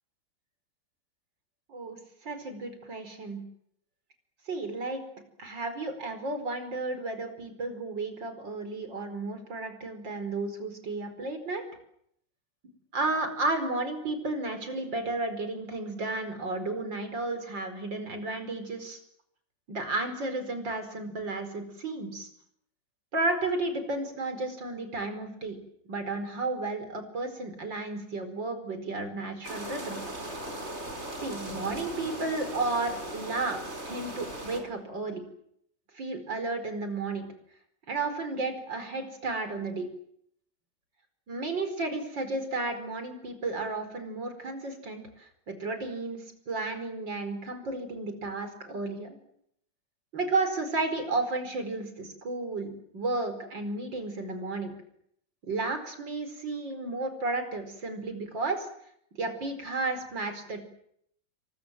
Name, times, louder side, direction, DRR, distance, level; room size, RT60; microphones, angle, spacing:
voice 1, 1.7-3.4 4.5-5.0 5.4-11.6 12.6-19.0 19.7-22.3 23.1-25.6 25.9-30.0 31.2-33.6 33.9-35.2 35.9-37.3 37.9-39.9 41.3-49.2 50.1-54.7 55.4-58.7 59.2-60.6, right 3 dB, 80° right, 8 dB, 5.5 m, -33 dB
sound 1, 29.4-34.6, right 1 dB, 35° right, 5.5 m, -38 dB
29.0 x 23.5 x 7.7 m, 0.71 s
omnidirectional pair, 2.0 m